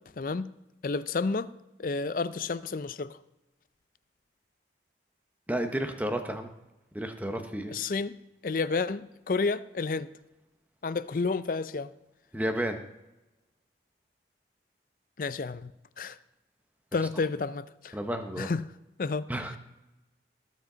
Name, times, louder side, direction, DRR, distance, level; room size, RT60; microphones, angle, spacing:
voice 1, 0.2-0.5 0.8-1.5 1.8-3.2 7.7-8.2 8.4-10.1 10.8-11.9 15.2-15.7 16.0-16.2 16.9-18.0 18.4-18.6 19.0-19.3, left 4 dB, 50° left, 15 dB, 0.4 m, -30 dB
voice 2, 5.5-6.5 6.9-7.7 12.3-12.8 17.9-18.5 19.3-19.6, right 1 dB, 10° right, 6 dB, 0.9 m, -31 dB
18.5 x 7.4 x 3.9 m, 0.99 s
head